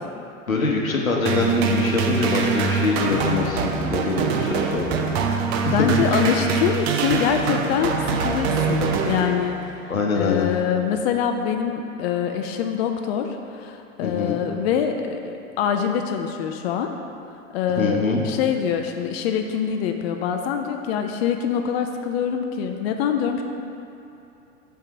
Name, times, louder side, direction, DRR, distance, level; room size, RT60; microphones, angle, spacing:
voice 1, 0.5-5.0 5.6-5.9 9.9-10.5 14.0-14.4 17.8-18.2, left 3 dB, 90° left, 0 dB, 0.9 m, -24 dB
sound 1, 1.3-9.8, right 5 dB, 50° right, 0.6 m, -24 dB
voice 2, 5.7-9.8 10.1-16.9 17.5-23.4, left 8 dB, 50° left, 5 dB, 0.5 m, -24 dB
5.8 x 3.6 x 5.7 m, 2.8 s
figure-of-eight pair, 90°, 40 cm